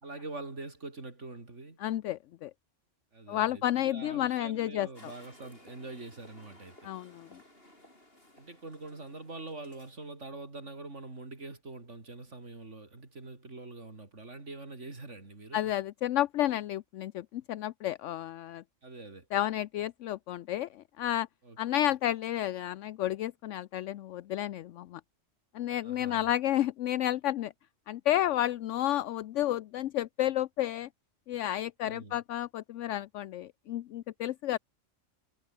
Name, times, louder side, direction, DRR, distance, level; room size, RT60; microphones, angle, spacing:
voice 1, 0.0-1.8 3.1-6.9 8.4-15.7 18.8-19.3 21.4-21.9 25.8-26.3 31.8-32.2, right 2 dB, 65° right, 4.2 m, -44 dB
voice 2, 1.8-2.5 3.3-5.1 6.8-7.4 15.5-18.6 19.3-21.3 21.6-25.0 25.5-27.5 27.9-30.9 31.3-34.6, left 13 dB, 70° left, 0.9 m, -31 dB
sound 1, 4.9-10.0, left 1 dB, 45° left, 8.1 m, -57 dB
omnidirectional pair, 1.3 m